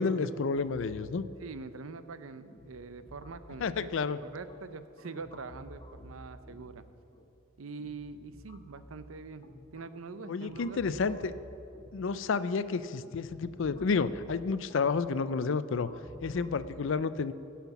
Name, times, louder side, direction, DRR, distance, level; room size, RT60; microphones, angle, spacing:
voice 1, 0.0-1.3 3.6-4.2 10.3-11.3 11.9-15.9 16.2-17.3, left 4 dB, 60° left, 14 dB, 0.4 m, -30 dB
sound 1, 0.6-16.8, left 1 dB, 25° left, 0.7 m, -53 dB
voice 2, 1.4-3.9 4.2-6.8 7.6-9.5 9.7-10.8, right 4 dB, 75° right, 12 dB, 0.6 m, -44 dB
16.0 x 5.8 x 7.1 m, 2.8 s
head